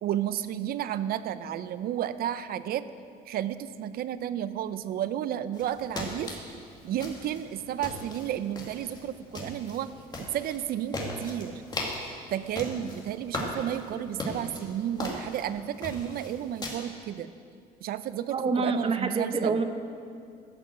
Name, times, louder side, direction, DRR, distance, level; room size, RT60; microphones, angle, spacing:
voice 1, 0.0-2.9 3.3-6.4 6.8-9.9 10.2-11.6 12.3-17.3 17.8-19.6, right 11 dB, 60° right, 14 dB, 0.6 m, -32 dB
sound 1, 5.5-16.7, left 1 dB, 25° left, 2.3 m, -39 dB
voice 2, 18.3-19.6, right 4 dB, 35° right, 7 dB, 1.0 m, -27 dB
13.5 x 6.1 x 7.8 m, 2.4 s
cardioid pair, 110°, 17 cm